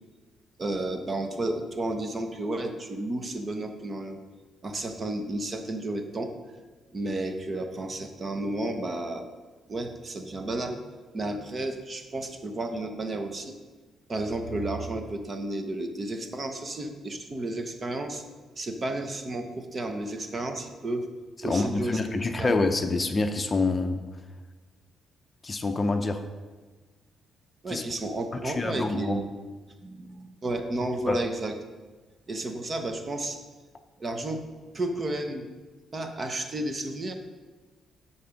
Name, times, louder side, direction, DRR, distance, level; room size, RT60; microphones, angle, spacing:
voice 1, 0.6-4.2 4.6-6.3 6.9-9.3 9.7-10.8 11.1-13.5 14.1-18.2 18.6-21.1 21.4-22.5 27.6-29.3 29.8-31.5 32.3-33.4 34.0-34.5 34.7-35.5 35.9-37.1, right 2 dB, 35° right, 6 dB, 1.0 m, -32 dB
voice 2, 21.4-24.0 25.4-26.2 27.7-27.8 28.4-29.2 31.1-31.2, left 3 dB, 30° left, 7 dB, 0.6 m, -26 dB
11.5 x 4.3 x 5.1 m, 1.3 s
cardioid pair, 90°, 0 cm